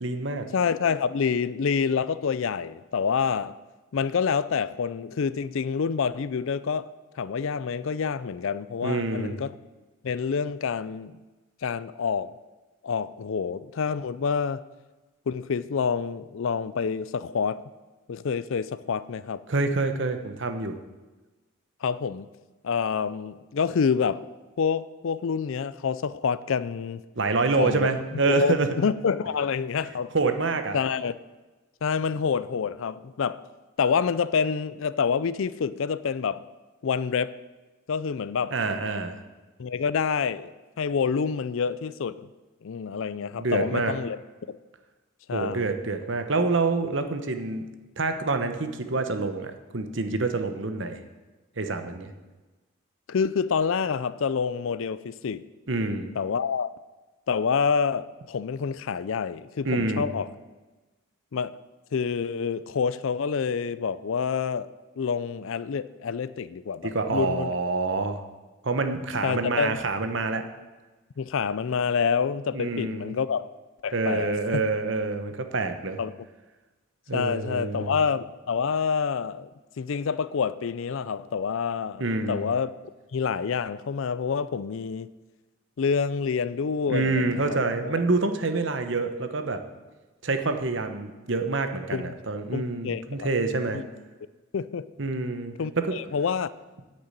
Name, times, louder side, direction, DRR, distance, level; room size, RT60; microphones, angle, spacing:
voice 1, 0.0-0.5 8.8-9.4 19.5-20.8 27.2-28.7 30.1-30.8 38.5-39.2 43.4-43.9 45.3-47.7 48.0-51.0 51.6-52.1 55.7-56.1 59.6-60.1 66.8-68.2 68.6-70.4 72.5-73.2 73.9-76.0 77.1-77.9 82.0-82.5 86.9-89.6 90.2-93.8 95.0-95.9, right 3 dB, 55° right, 1.0 m, -27 dB
voice 2, 0.5-3.5 3.9-6.9 7.2-9.5 10.0-11.2 11.6-12.3 12.8-14.6 15.3-17.6 18.1-19.4 21.8-22.3 22.6-24.2 24.6-27.0 27.6-30.1 30.7-31.1 31.8-33.4 33.8-36.4 36.8-37.3 37.9-38.5 39.6-40.5 40.8-42.3 42.6-44.2 44.5-44.6 45.3-45.7 53.1-55.4 56.2-56.7 57.3-60.3 61.3-61.5 61.9-67.5 69.2-69.8 71.2-73.5 73.8-74.6 76.0-76.1 77.1-79.5 79.8-82.7 83.1-85.1 85.8-87.9 91.9-92.1 92.5-93.3 93.7-93.8 94.5-94.9 95.6-96.5, left 6 dB, 65° left, 0.4 m, -27 dB
9.8 x 6.6 x 8.9 m
head